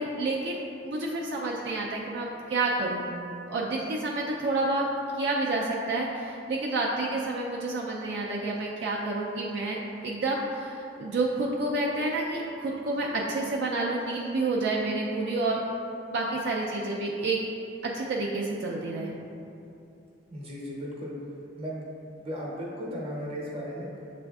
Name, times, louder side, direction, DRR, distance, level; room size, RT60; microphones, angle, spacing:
voice 1, 0.0-3.1 3.5-4.8 5.1-15.6 16.1-17.4 17.8-19.1, right 2 dB, 65° right, -3 dB, 0.4 m, -29 dB
voice 2, 20.3-21.1 21.6-21.8 22.2-23.9, equal, 30° right, -4 dB, 0.7 m, -36 dB
6.9 x 2.5 x 2.3 m, 2.6 s
head